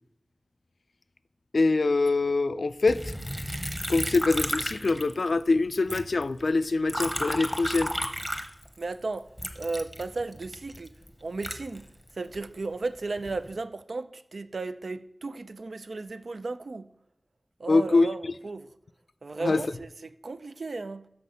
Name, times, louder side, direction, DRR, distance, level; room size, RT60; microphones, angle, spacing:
voice 1, 1.5-3.1 3.9-7.9 17.7-18.3 19.4-19.6, left 3 dB, 85° left, 0.3 m, -24 dB
Liquid, 2.9-5.5 5.7-8.9 9.4-12.4 13.0-13.5, equal, 5° right, 0.8 m, -33 dB
voice 2, 8.8-9.3 9.6-10.9 11.2-11.9 12.1-16.9 17.6-18.7 19.2-21.1, right 3 dB, 85° right, 0.4 m, -35 dB
6.4 x 5.7 x 5.3 m
wide cardioid pair, 55°, 0 cm